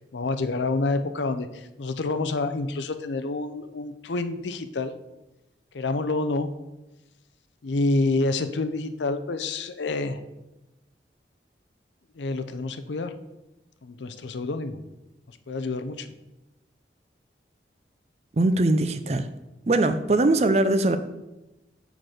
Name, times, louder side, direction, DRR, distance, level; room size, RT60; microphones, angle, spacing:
voice 1, 0.1-4.9 5.7-6.6 7.6-10.2 12.1-13.1 13.8-14.8 15.5-16.1, left 3 dB, 90° left, 9 dB, 0.6 m, -28 dB
voice 2, 18.4-19.3 19.7-21.0, right 2 dB, 35° right, 10 dB, 0.5 m, -21 dB
6.6 x 6.0 x 4.9 m, 0.99 s
head